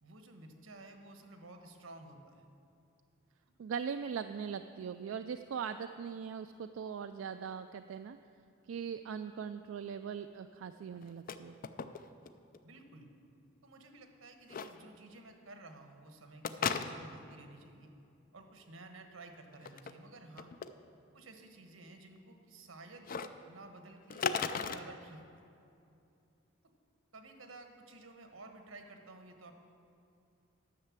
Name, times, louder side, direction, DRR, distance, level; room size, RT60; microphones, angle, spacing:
voice 1, 0.0-2.5 12.6-13.1 13.6-17.9 18.3-20.5 21.1-23.2 23.4-25.2 27.1-29.5, right 2 dB, 90° right, 5 dB, 1.2 m, -53 dB
voice 2, 3.6-8.2 8.7-11.6, right 7 dB, 70° right, 9 dB, 0.3 m, -40 dB
sound 1, 11.0-11.4 11.6-12.3 12.5-12.6 14.5-14.7 16.4-17.2 19.5-19.9 20.4-20.7 23.0-23.3 24.1-24.8, left 6 dB, 45° left, 0.4 m, -35 dB
11.0 x 6.5 x 7.4 m, 2.6 s
head